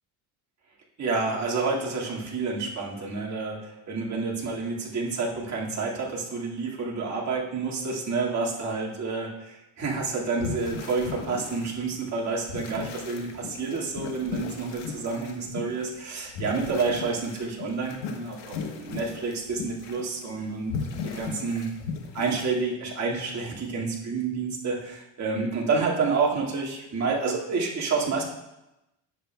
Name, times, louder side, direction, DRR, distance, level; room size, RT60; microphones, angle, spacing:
voice 1, 1.0-21.7 22.1-28.2, right 4 dB, 40° right, -4 dB, 2.1 m, -29 dB
sound 1, 9.9-10.0 10.2-22.7, left 6 dB, 75° left, 1.2 m, -37 dB
10.0 x 7.5 x 2.2 m, 0.93 s
supercardioid pair, 100°, 44 cm